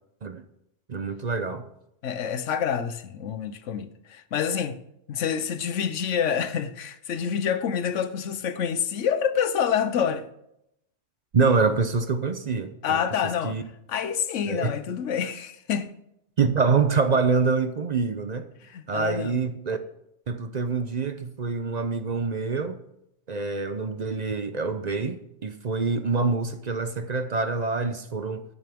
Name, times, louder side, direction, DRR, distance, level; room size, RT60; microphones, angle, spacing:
voice 1, 0.9-1.7 11.3-13.0 13.4-13.6 14.5-14.7 16.4-18.5 18.9-19.8 20.3-22.8 23.3-28.4, right 4 dB, 45° right, 0.7 m, -25 dB
voice 2, 2.0-4.8 5.1-10.3 12.8-13.6 13.9-15.9 18.6-19.4, left 8 dB, 85° left, 1.1 m, -27 dB
15.0 x 9.0 x 3.5 m
omnidirectional pair, 1.2 m